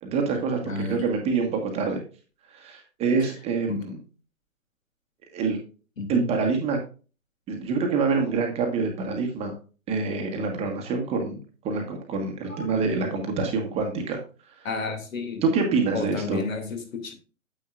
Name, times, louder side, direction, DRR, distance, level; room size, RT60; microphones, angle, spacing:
voice 1, 0.0-2.0 2.5-4.0 5.3-5.6 6.1-6.8 7.5-9.5 9.9-11.4 11.6-14.2 14.5-14.7 15.4-16.4, right 4 dB, 15° right, 1.3 m, -26 dB
voice 2, 0.7-1.1 3.7-3.9 6.0-6.4 12.5-12.7 14.6-15.4 15.9-17.1, left 3 dB, 60° left, 2.8 m, -32 dB
9.3 x 8.4 x 2.5 m
figure-of-eight pair, 135°, 44 cm